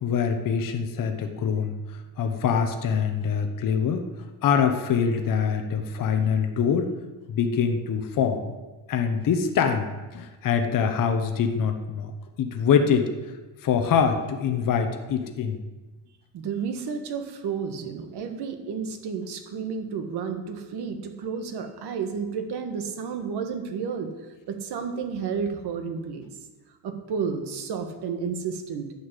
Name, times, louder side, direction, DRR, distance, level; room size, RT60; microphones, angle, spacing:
voice 1, 0.0-4.1 4.4-7.0 7.3-8.5 8.9-12.1 12.4-13.1 13.6-15.6, left 6 dB, 45° left, 6 dB, 1.1 m, -24 dB
voice 2, 16.3-24.1 24.5-26.3 26.8-28.9, right 6 dB, 55° right, 6 dB, 1.6 m, -31 dB
11.5 x 5.8 x 8.3 m, 1.2 s
cardioid pair, 160°, 46 cm